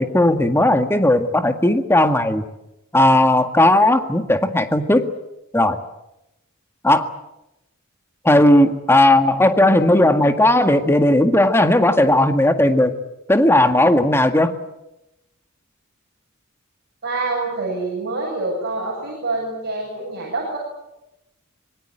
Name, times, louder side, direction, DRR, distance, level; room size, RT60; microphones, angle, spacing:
voice 1, 0.0-2.4 2.9-5.1 5.5-5.8 6.8-7.1 8.2-12.9 13.3-14.5, left 1 dB, 10° left, 8 dB, 1.8 m, -16 dB
voice 2, 17.0-20.6, right 3 dB, 50° right, -3 dB, 7.9 m, -26 dB
25.5 x 22.5 x 9.1 m, 0.90 s
head